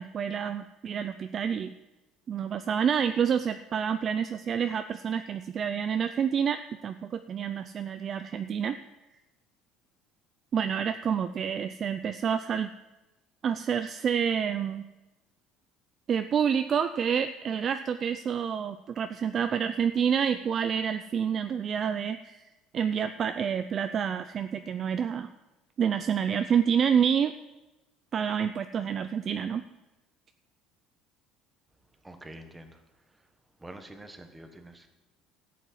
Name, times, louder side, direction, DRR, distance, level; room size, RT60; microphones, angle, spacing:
voice 1, 0.0-1.7 2.3-8.8 10.5-12.7 13.4-14.8 16.1-22.4 22.7-25.3 25.8-27.3 28.1-29.6, right 7 dB, 30° right, 10 dB, 0.4 m, -28 dB
voice 2, 32.0-32.8 33.6-34.9, right 1 dB, 10° right, 7 dB, 1.2 m, -46 dB
13.5 x 8.3 x 7.5 m, 1.0 s
cardioid pair, 155°, 0 cm